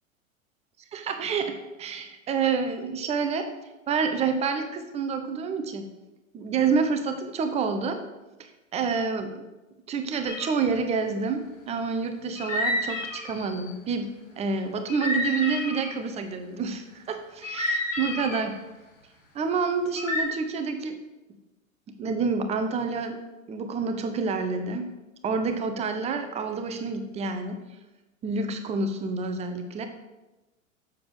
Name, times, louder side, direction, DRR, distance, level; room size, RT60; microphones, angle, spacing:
voice 1, 0.9-3.5 3.9-5.8 6.3-8.0 8.7-9.4 9.9-18.5 19.3-21.0 22.0-23.2 23.5-24.9 25.2-27.6 28.2-29.9, right 5 dB, 15° right, 7 dB, 0.7 m, -28 dB
sound 1, 10.3-10.7 12.4-13.7 14.9-15.9 17.4-18.5 20.0-20.2, left 2 dB, 65° left, 2.0 m, -30 dB
7.0 x 6.8 x 5.1 m, 1.1 s
figure-of-eight pair, 95°, 41 cm